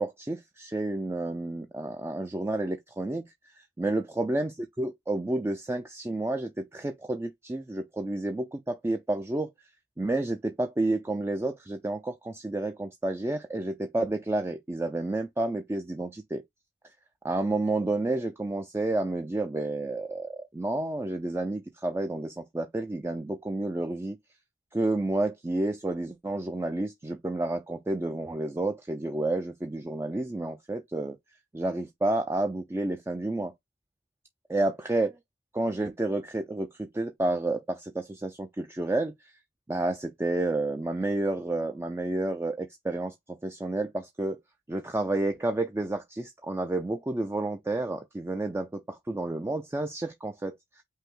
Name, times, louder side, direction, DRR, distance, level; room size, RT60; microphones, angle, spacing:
voice 1, 0.0-3.2 3.8-9.5 10.0-16.4 17.2-24.2 24.7-31.2 31.5-33.5 34.5-35.1 35.5-39.3 39.7-43.1 43.4-44.4 44.7-50.6, right 2 dB, 15° right, 0.4 m, -30 dB
5.4 x 2.0 x 3.7 m
head